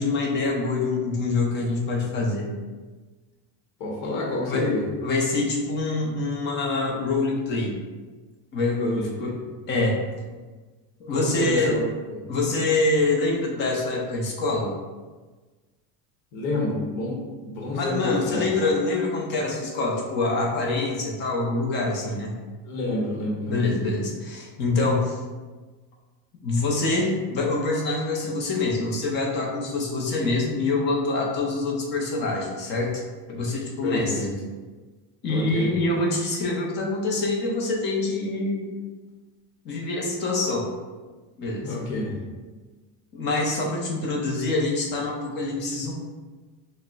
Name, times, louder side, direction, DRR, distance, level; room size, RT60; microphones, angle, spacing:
voice 1, 0.0-2.5 4.0-4.1 4.5-4.7 5.0-7.8 8.5-9.4 9.7-10.0 11.0-11.8 12.3-14.7 17.7-22.3 23.5-25.2 26.4-33.0 33.3-34.2 35.2-38.7 39.6-40.7 41.4-41.7 43.1-45.9, left 2 dB, 25° left, -2 dB, 0.4 m, -25 dB
voice 2, 3.8-4.9 8.8-9.5 11.1-11.8 12.1-12.2 16.3-18.5 22.6-23.7 33.8-34.3 35.3-35.7 41.6-42.2, left 2 dB, 65° left, -2 dB, 0.9 m, -28 dB
6.2 x 2.1 x 2.3 m, 1.3 s
cardioid pair, 155°, 50 cm